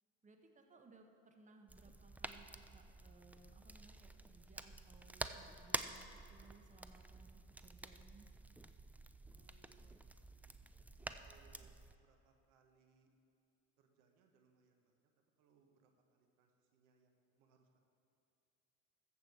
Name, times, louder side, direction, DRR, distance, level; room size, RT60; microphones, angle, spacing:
voice 1, 0.2-8.3, right 3 dB, 20° right, 4 dB, 1.2 m, -64 dB
sound 1, 1.7-11.9, right 2 dB, 5° right, 0.3 m, -49 dB
voice 2, 9.3-10.0 10.8-11.7 12.0-13.1 13.8-15.1 15.4-17.8, right 6 dB, 80° right, 4 dB, 1.3 m, -72 dB
14.0 x 7.4 x 4.9 m, 2.6 s
supercardioid pair, 90°, 35 cm